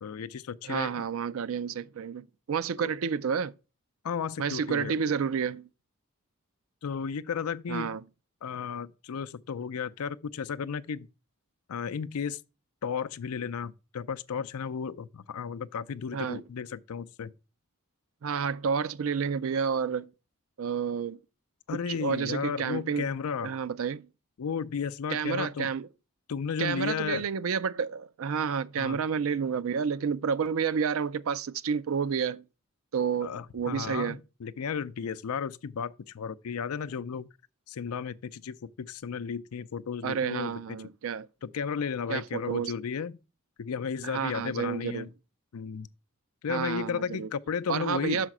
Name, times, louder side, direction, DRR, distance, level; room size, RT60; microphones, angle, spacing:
voice 1, 0.0-1.0 2.8-2.9 4.0-4.9 6.8-8.0 8.4-11.1 11.7-12.4 12.8-17.3 21.7-23.5 24.4-25.7 26.3-27.2 28.8-29.0 33.2-37.3 37.7-40.6 41.4-43.2 43.6-45.1 45.5-45.9 46.4-48.2, left 6 dB, 90° left, 0.5 m, -34 dB
voice 2, 0.6-3.5 4.4-5.7 7.7-8.0 16.1-16.4 18.2-20.1 20.6-21.2 21.7-23.1 23.4-24.1 25.1-25.9 26.6-32.4 32.9-34.2 40.0-41.3 42.1-42.7 44.0-45.1 46.5-47.3 47.7-48.3, right 6 dB, 70° right, 0.4 m, -30 dB
6.5 x 5.1 x 5.9 m
head